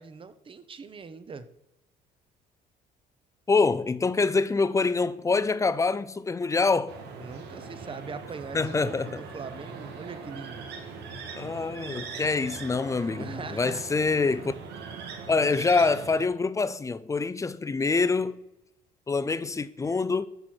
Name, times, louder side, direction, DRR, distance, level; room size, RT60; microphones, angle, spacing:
voice 1, 0.0-1.5 7.2-10.7 13.2-13.9, right 5 dB, 30° right, 1.0 m, -41 dB
voice 2, 3.5-7.0 8.5-9.2 11.3-14.6 15.3-18.4 19.1-20.3, left 4 dB, 20° left, 0.5 m, -25 dB
sound 1, 6.9-16.3, right 5 dB, 85° right, 1.9 m, -41 dB
13.5 x 4.5 x 6.4 m
cardioid pair, 110°, 17 cm